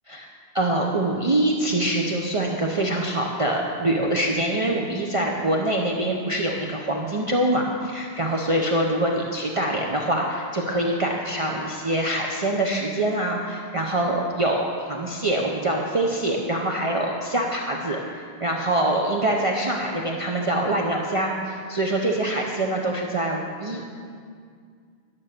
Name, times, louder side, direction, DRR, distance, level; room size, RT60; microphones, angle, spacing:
voice 1, 0.5-24.0, right 1 dB, 35° right, -1 dB, 0.8 m, -24 dB
11.5 x 7.3 x 6.6 m, 2.1 s
omnidirectional pair, 1.1 m